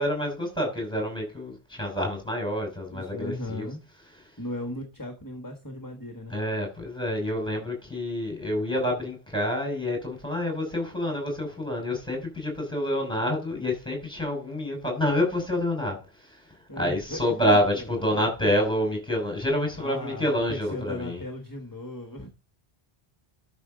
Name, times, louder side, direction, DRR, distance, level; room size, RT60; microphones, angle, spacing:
voice 1, 0.0-3.7 6.3-21.2, left 1 dB, 5° left, 5.6 m, -28 dB
voice 2, 2.9-3.8 4.4-6.4 16.7-18.3 19.8-22.3, left 1 dB, 20° left, 1.5 m, -37 dB
12.5 x 6.3 x 3.9 m
omnidirectional pair, 1.0 m